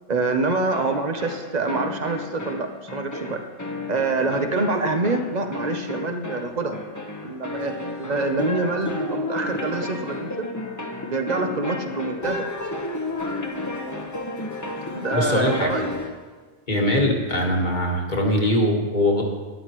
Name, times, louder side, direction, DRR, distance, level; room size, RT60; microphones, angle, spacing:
voice 1, 0.1-3.4 3.9-6.8 7.2-10.5 11.1-12.5 14.9-15.9, right 3 dB, 40° right, 6 dB, 0.8 m, -26 dB
sound 1, 0.7-16.2, left 2 dB, 15° left, 0.9 m, -32 dB
voice 2, 15.1-15.7 16.7-19.2, left 1 dB, 40° left, 0 dB, 1.6 m, -21 dB
13.0 x 10.5 x 3.0 m, 1.4 s
omnidirectional pair, 1.2 m